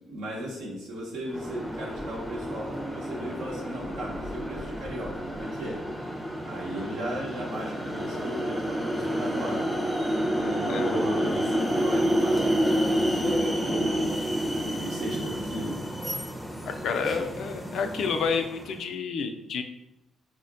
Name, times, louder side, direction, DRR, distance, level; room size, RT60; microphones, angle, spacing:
voice 1, 0.1-5.8 6.5-9.8 10.4-14.4 14.7-15.8, equal, 75° right, -3 dB, 0.8 m, -36 dB
sound 1, 1.3-18.8, equal, ahead, 0.5 m, -29 dB
Singing, 1.4-18.4, right 4 dB, 50° right, 0.4 m, -48 dB
voice 2, 10.4-10.9 16.7-19.6, left 5 dB, 65° left, 6 dB, 0.3 m, -30 dB
3.6 x 2.1 x 2.5 m, 0.88 s
hypercardioid pair, 50°, 0 cm